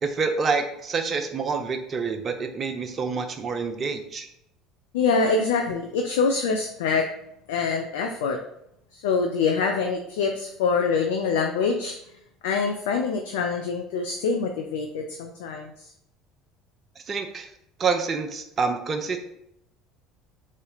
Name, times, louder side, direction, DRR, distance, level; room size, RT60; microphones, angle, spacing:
voice 1, 0.0-4.3 17.1-17.5 17.8-19.2, right 5 dB, 35° right, 7 dB, 0.6 m, -27 dB
voice 2, 4.9-7.1 7.5-8.4 8.9-12.0 12.4-15.7, left 5 dB, 70° left, 4 dB, 0.4 m, -25 dB
4.0 x 3.1 x 3.9 m, 0.76 s
hypercardioid pair, 65°, 0 cm